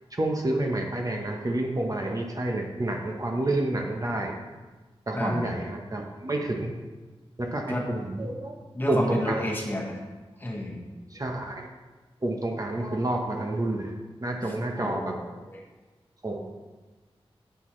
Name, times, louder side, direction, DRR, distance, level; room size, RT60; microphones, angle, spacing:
voice 1, 0.1-4.3 5.1-6.7 7.4-8.5 8.9-9.5 11.1-11.7 12.2-13.9 14.2-15.1 16.2-16.5, right 1 dB, 35° right, 1 dB, 1.0 m, -29 dB
voice 2, 5.1-5.5 7.7-7.9 8.7-10.0 10.4-10.8 14.4-15.6, left 1 dB, 20° left, -1 dB, 1.6 m, -31 dB
9.7 x 8.0 x 3.2 m, 1.3 s
wide cardioid pair, 90°, 10 cm